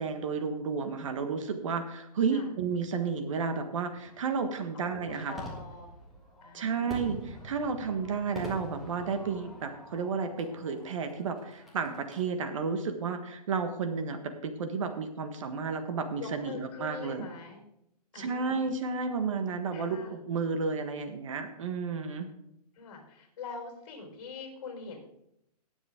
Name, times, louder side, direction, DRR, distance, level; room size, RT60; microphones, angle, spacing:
voice 1, 0.0-5.4 6.5-17.3 18.2-22.3, right 5 dB, 50° right, 7 dB, 1.5 m, -32 dB
Fireworks, 3.9-12.2, equal, ahead, 1.7 m, -46 dB
voice 2, 4.7-5.9 6.4-7.0 16.2-17.6 18.1-18.7 19.7-20.2 22.7-25.0, left 5 dB, 45° left, 2 dB, 4.7 m, -44 dB
18.5 x 7.2 x 3.7 m, 0.79 s
hypercardioid pair, 165°, 21 cm